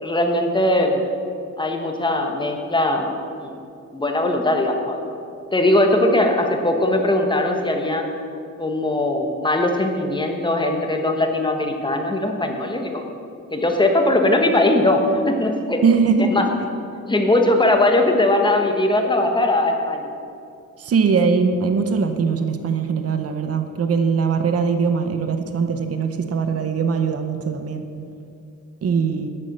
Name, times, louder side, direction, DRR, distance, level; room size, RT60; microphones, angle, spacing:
voice 1, 0.0-1.0 1.6-3.1 3.4-3.5 3.9-5.0 5.5-8.0 8.6-13.0 13.5-15.8 16.2-16.5 17.1-20.1, left 1 dB, 15° left, 3 dB, 1.1 m, -20 dB
voice 2, 15.8-16.4 20.8-27.9 28.8-29.3, right 5 dB, 45° right, 7 dB, 0.7 m, -21 dB
9.8 x 8.5 x 6.6 m, 2.5 s
wide cardioid pair, 175°, 32 cm